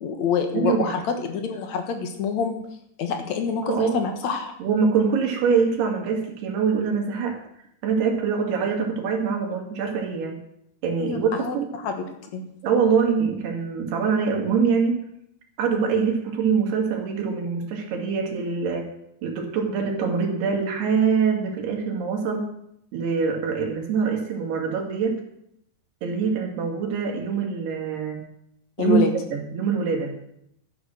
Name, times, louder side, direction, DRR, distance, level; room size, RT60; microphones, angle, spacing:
voice 1, 0.0-2.6 3.0-4.5 11.0-11.6 11.8-12.1 12.3-12.4 28.8-29.1, left 6 dB, 60° left, 6 dB, 2.1 m, -26 dB
voice 2, 0.5-1.0 3.6-4.0 4.6-7.4 7.8-10.4 10.8-11.7 12.6-15.0 15.6-18.9 19.2-22.4 22.9-25.2 26.0-28.3 28.8-29.0 29.3-30.1, right 5 dB, 80° right, 1 dB, 4.3 m, -24 dB
12.5 x 10.5 x 6.3 m, 0.74 s
omnidirectional pair, 4.5 m